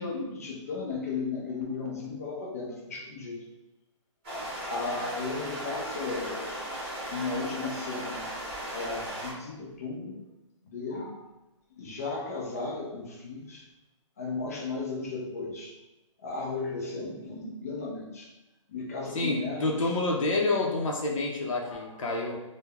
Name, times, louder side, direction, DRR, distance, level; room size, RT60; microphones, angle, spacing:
voice 1, 0.0-3.4 4.7-6.5 7.0-8.2 8.7-10.2 10.6-11.3 11.8-13.7 14.2-15.7 16.2-18.3 18.7-20.0 21.6-21.9, left 3 dB, 30° left, -2 dB, 0.5 m, -35 dB
sound 1, 4.2-9.3, right 1 dB, 20° right, 0.9 m, -37 dB
voice 2, 19.1-22.4, left 2 dB, 80° left, -1 dB, 0.5 m, -28 dB
3.2 x 2.0 x 2.3 m, 0.99 s
hypercardioid pair, 175°, 16 cm